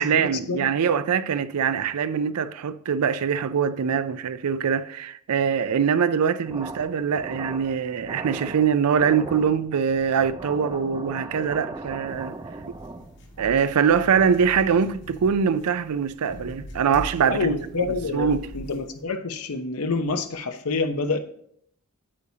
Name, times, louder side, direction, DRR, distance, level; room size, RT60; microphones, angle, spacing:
voice 1, 0.0-12.4 12.7-12.8 13.4-17.6 18.1-18.5, right 7 dB, 90° right, 0.4 m, -23 dB
sound 1, 6.4-13.3, right 2 dB, 20° right, 0.4 m, -38 dB
sound 2, 12.1-19.0, equal, 55° left, 1.8 m, -42 dB
voice 2, 17.3-21.2, left 3 dB, 80° left, 0.8 m, -27 dB
8.6 x 8.4 x 2.8 m
head